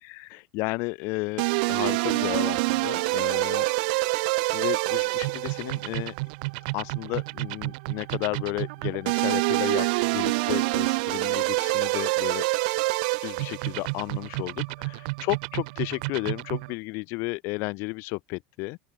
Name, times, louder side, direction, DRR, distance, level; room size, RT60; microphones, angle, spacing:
voice 1, 0.0-4.0 4.5-6.1 6.7-12.8 13.2-18.8, left 27 dB, 60° left, 1.7 m, -33 dB
sound 1, 1.4-16.7, right 27 dB, 75° right, 0.4 m, -27 dB
open air
supercardioid pair, 140°, 5 cm